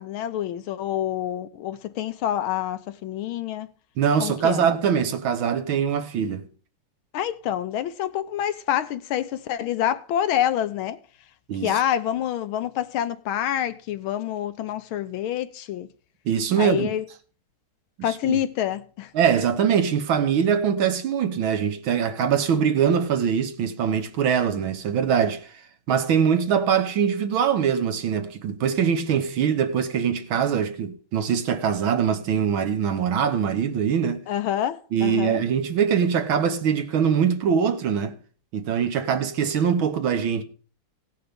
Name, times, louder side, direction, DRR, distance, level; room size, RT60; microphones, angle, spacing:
voice 1, 0.0-3.7 4.2-4.7 7.1-11.0 11.6-15.9 16.6-17.1 18.0-19.1 34.3-35.4, left 11 dB, 75° left, 1.5 m, -27 dB
voice 2, 4.0-6.4 11.5-11.7 16.3-16.9 18.1-18.4 19.1-25.5 25.9-34.2 34.9-38.2 38.5-40.4, right 7 dB, 70° right, 1.8 m, -23 dB
17.0 x 5.8 x 5.1 m
omnidirectional pair, 2.4 m